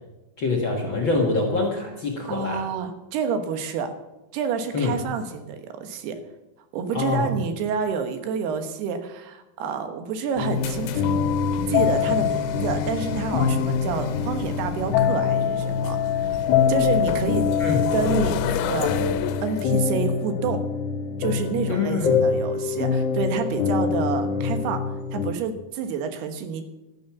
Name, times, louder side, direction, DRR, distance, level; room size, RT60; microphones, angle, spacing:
voice 1, 0.4-2.7 4.7-5.0 6.9-7.3 17.6-17.9 21.7-22.3, left 3 dB, 50° left, 1 dB, 1.5 m, -25 dB
voice 2, 2.3-3.9 4.3-6.2 6.7-11.0 11.7-16.4 16.7-17.5 17.9-19.0 19.4-20.6 21.2-24.8 25.1-26.6, right 6 dB, 85° right, 7 dB, 3.3 m, -28 dB
sound 1, 10.4-19.7, left 9 dB, 90° left, 2.9 m, -32 dB
sound 2, 10.4-25.3, left 6 dB, 75° left, 2.9 m, -24 dB
12.5 x 10.5 x 7.2 m, 1.0 s
omnidirectional pair, 4.5 m